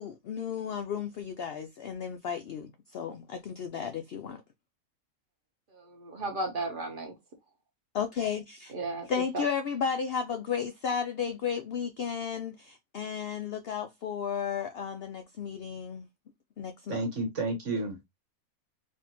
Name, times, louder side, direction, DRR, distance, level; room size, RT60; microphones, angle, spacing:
voice 1, 0.0-4.4 7.9-8.7 9.1-16.1 16.6-17.0, left 7 dB, 70° left, 0.5 m, -33 dB
voice 2, 5.7-7.1 8.7-9.5, right 2 dB, 40° right, 1.1 m, -35 dB
voice 3, 16.9-18.0, right 2 dB, 55° right, 1.6 m, -31 dB
4.3 x 2.6 x 2.9 m
omnidirectional pair, 1.5 m